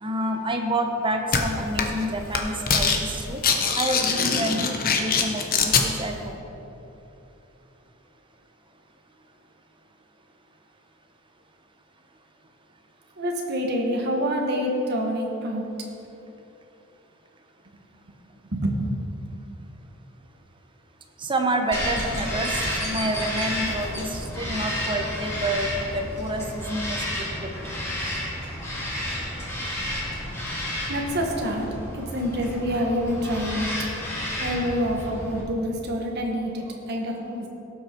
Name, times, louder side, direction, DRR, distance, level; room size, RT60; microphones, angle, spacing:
voice 1, 0.0-3.4 3.8-6.4 21.2-27.5, right 1 dB, 25° right, 4 dB, 1.0 m, -28 dB
sound 1, 1.3-1.4 1.8-2.0 2.3-3.0 3.3-5.9, left 5 dB, 45° left, 1.0 m, -22 dB
voice 2, 13.2-15.7 18.5-18.9 30.9-31.7 31.9-33.7 34.4-37.5, equal, 55° right, 0 dB, 1.3 m, -27 dB
Bird vocalization bird call bird song, 21.7-35.4, left 1 dB, 15° left, 2.4 m, -31 dB
17.0 x 6.2 x 4.5 m, 2.9 s
head